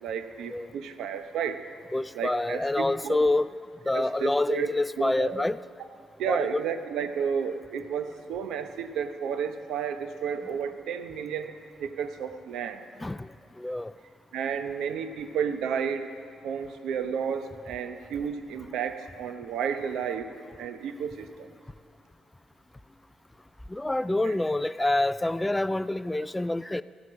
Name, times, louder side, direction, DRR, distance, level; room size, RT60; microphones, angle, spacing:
voice 1, 0.0-1.6 2.1-3.2 3.9-4.7 5.0-5.5 6.2-11.5 11.8-12.8 14.3-16.1 16.4-20.3 20.6-21.5 24.2-24.3, right 7 dB, 80° right, 8 dB, 0.9 m, -32 dB
voice 2, 1.9-3.5 3.9-5.6 6.3-6.6 13.0-13.2 13.6-13.9 23.7-26.8, left 2 dB, 10° left, 16 dB, 0.3 m, -27 dB
16.5 x 10.5 x 6.3 m, 2.5 s
cardioid pair, 90°, 0 cm